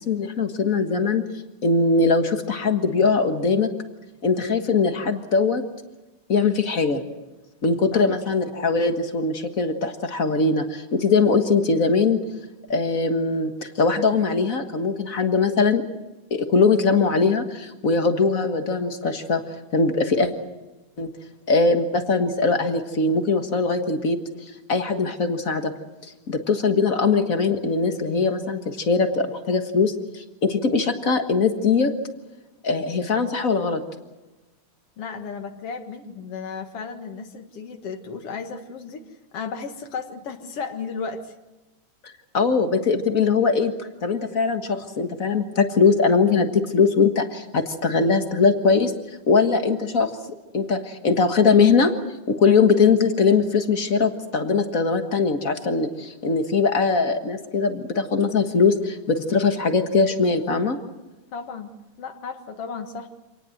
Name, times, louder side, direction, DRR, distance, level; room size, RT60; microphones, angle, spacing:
voice 1, 0.1-1.2 1.6-3.7 4.2-5.6 6.3-7.0 7.6-12.2 12.7-15.8 16.3-19.4 19.7-20.3 21.0-21.1 21.5-24.2 24.7-25.7 26.3-31.9 32.6-33.8 42.3-43.7 44.0-48.9 49.3-50.1 50.5-51.9 52.3-60.8, left 4 dB, 40° left, 7 dB, 1.3 m, -21 dB
voice 2, 35.0-41.3 61.3-63.1, left 5 dB, 55° left, 7 dB, 2.4 m, -34 dB
26.5 x 19.0 x 7.9 m, 1.1 s
omnidirectional pair, 3.3 m